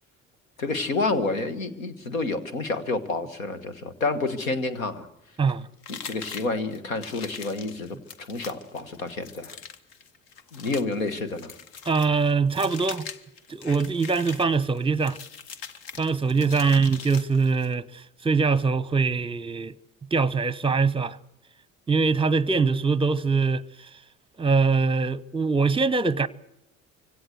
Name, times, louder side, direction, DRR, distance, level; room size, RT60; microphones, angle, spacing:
voice 1, 0.6-5.1 5.9-8.0 8.3-9.6 10.5-11.5, left 3 dB, 85° left, 1.4 m, -29 dB
sound 1, 5.8-17.7, left 7 dB, 60° left, 1.2 m, -42 dB
voice 2, 11.9-13.0 13.5-15.2 16.0-19.7 20.1-21.2 21.9-23.6 24.4-26.3, right 4 dB, 15° right, 0.8 m, -23 dB
24.5 x 17.0 x 7.9 m
hypercardioid pair, 55°, 40 cm